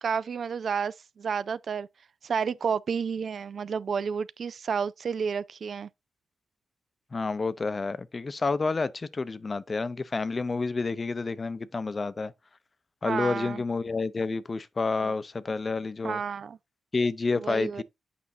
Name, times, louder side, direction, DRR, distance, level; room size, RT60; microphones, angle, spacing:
voice 1, 0.0-1.9 2.2-5.9 13.0-13.6 15.0-15.1 16.0-16.6 17.3-17.8, right 6 dB, 60° right, 0.3 m, -31 dB
voice 2, 7.1-12.3 13.0-16.2 16.9-17.8, left 3 dB, 35° left, 0.6 m, -29 dB
8.5 x 5.2 x 2.7 m
cardioid pair, 80°, 0 cm